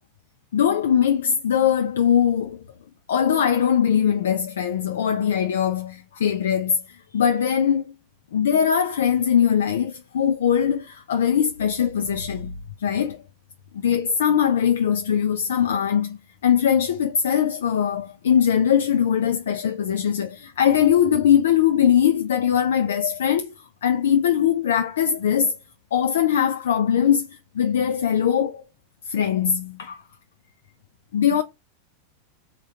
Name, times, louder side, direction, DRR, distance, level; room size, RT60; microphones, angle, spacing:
voice 1, 0.5-2.6 3.1-7.8 8.3-12.5 12.8-13.2 13.7-23.5 23.8-25.6 25.9-27.3 27.5-28.6 29.1-30.0 31.1-31.4, left 8 dB, 60° left, 0.3 m, -21 dB
3.6 x 2.2 x 3.7 m
figure-of-eight pair, 90°, 0 cm